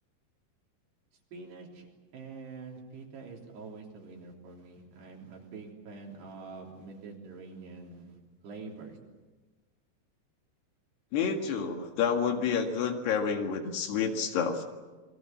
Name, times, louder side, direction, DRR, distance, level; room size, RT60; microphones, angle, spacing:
voice 1, 1.3-8.2 8.4-9.0, right 4 dB, 70° right, 0 dB, 5.5 m, -46 dB
voice 2, 11.1-14.6, left 6 dB, 70° left, 4 dB, 4.0 m, -29 dB
28.0 x 23.0 x 7.5 m, 1.2 s
omnidirectional pair, 5.1 m